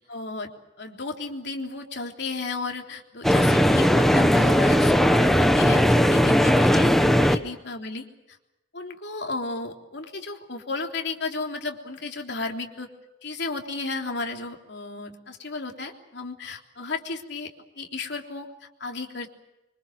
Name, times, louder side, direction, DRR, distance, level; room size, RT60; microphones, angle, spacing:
voice 1, 0.1-0.5 0.8-8.4 8.7-12.9 13.2-17.5 17.8-19.3, left 3 dB, 60° left, 2 dB, 3.5 m, -34 dB
sound 1, 3.2-7.4, equal, ahead, 1.3 m, -18 dB
25.5 x 25.0 x 6.4 m, 0.94 s
head